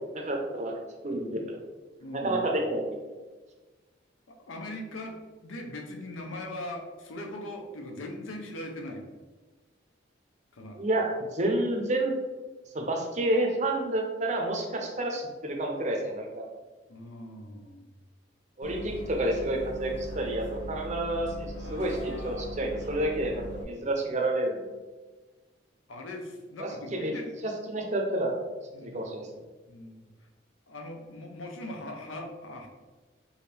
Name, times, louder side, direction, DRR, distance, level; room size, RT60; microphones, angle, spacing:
voice 1, 0.2-1.6 2.1-2.8 3.1-3.2 10.8-12.1 12.7-16.4 18.6-24.8 26.6-27.1 27.4-28.3 28.8-29.3, right 1 dB, 35° right, 2 dB, 0.6 m, -29 dB
voice 2, 2.0-2.4 4.3-9.0 10.5-10.8 16.9-17.9 25.9-27.3 28.7-29.1 29.7-30.1 30.7-32.7, left 1 dB, 85° left, 2 dB, 0.7 m, -40 dB
Bus, 18.6-23.6, equal, 65° left, 1.0 m, -39 dB
4.8 x 2.7 x 3.2 m, 1.3 s
head